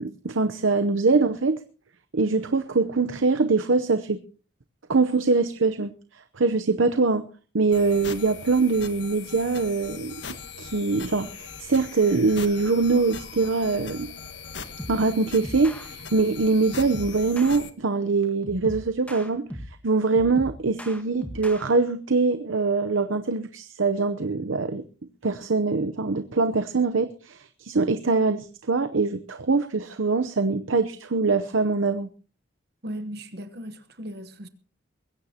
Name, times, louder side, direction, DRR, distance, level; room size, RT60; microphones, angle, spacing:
voice 1, 0.0-1.6 2.1-4.2 4.9-5.9 6.4-7.2 7.5-10.1 10.6-14.1 14.9-19.5 19.8-24.8 25.2-32.1, right 4 dB, 85° right, 0.8 m, -23 dB
sound 1, 7.7-17.7, left 5 dB, 65° left, 1.5 m, -40 dB
sound 2, 14.8-15.1 15.4-15.9 16.7-17.6 18.4-19.8 20.1-21.6, equal, 5° left, 1.6 m, -38 dB
voice 2, 32.8-34.5, equal, 55° right, 1.2 m, -37 dB
21.5 x 16.5 x 2.9 m
head